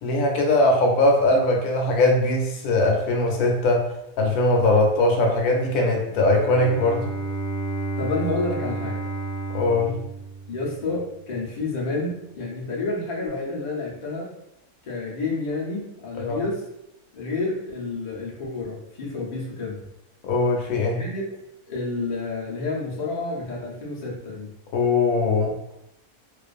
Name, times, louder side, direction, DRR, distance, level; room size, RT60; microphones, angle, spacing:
voice 1, 0.0-3.9 4.2-7.1 9.5-10.0 16.2-16.4 20.2-21.0 24.7-25.5, left 2 dB, 80° left, 0 dB, 1.1 m, -20 dB
Bowed string instrument, 6.0-11.0, right 3 dB, 20° left, 0.6 m, -31 dB
voice 2, 8.0-9.0 10.5-14.3 14.8-16.6 17.1-19.8 20.9-21.4 21.7-24.5, left 3 dB, 60° left, -4 dB, 0.4 m, -29 dB
2.4 x 2.4 x 2.4 m, 0.84 s
omnidirectional pair, 1.6 m